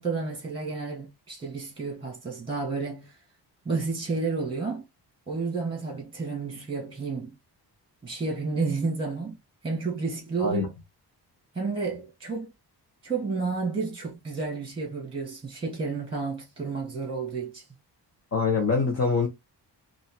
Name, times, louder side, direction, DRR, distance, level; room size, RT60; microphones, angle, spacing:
voice 1, 0.0-3.1 3.7-4.8 5.3-7.3 8.0-9.3 9.6-10.7 11.5-12.5 13.0-17.6, right 4 dB, 15° right, 2.1 m, -31 dB
voice 2, 18.3-19.3, left 4 dB, 40° left, 1.2 m, -24 dB
5.1 x 2.8 x 3.6 m
wide cardioid pair, 135°, 41 cm